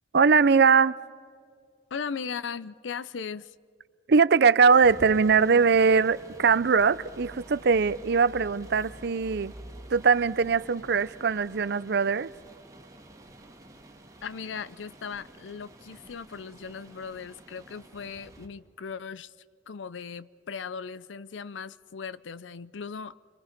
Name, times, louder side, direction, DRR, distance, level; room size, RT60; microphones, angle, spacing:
voice 1, 0.1-1.0 4.1-9.5 9.9-12.3, right 5 dB, 60° right, 0.6 m, -21 dB
voice 2, 1.9-3.5 14.2-19.3 19.7-23.2, left 6 dB, 90° left, 0.6 m, -38 dB
sound 1, 4.8-18.5, right 1 dB, 20° right, 2.4 m, -48 dB
28.5 x 22.5 x 5.9 m
head